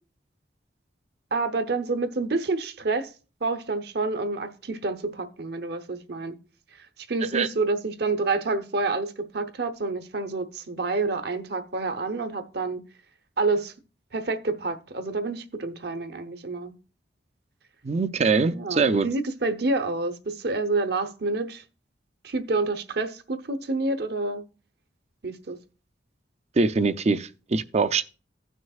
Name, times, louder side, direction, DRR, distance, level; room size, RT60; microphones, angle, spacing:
voice 1, 1.3-3.1 3.4-6.4 7.1-12.8 13.4-13.7 14.1-16.7 18.5-21.6 22.2-24.4 25.2-25.6, right 3 dB, 65° right, 0.9 m, -28 dB
voice 2, 17.8-19.1 26.6-28.0, right 4 dB, 40° right, 0.5 m, -23 dB
16.0 x 6.3 x 2.4 m
head